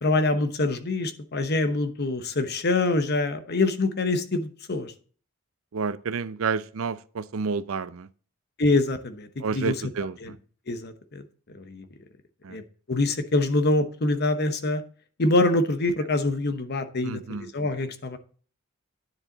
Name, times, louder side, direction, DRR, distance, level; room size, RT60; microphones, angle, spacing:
voice 1, 0.0-4.9 8.6-9.7 10.2-10.3 10.7-11.2 11.6-11.8 12.5-12.6 12.9-14.8 15.2-18.2, left 2 dB, 50° left, 1.0 m, -25 dB
voice 2, 5.7-8.1 9.4-10.4 12.4-12.6 17.0-17.5, right 5 dB, 80° right, 0.5 m, -30 dB
9.8 x 7.2 x 3.9 m
head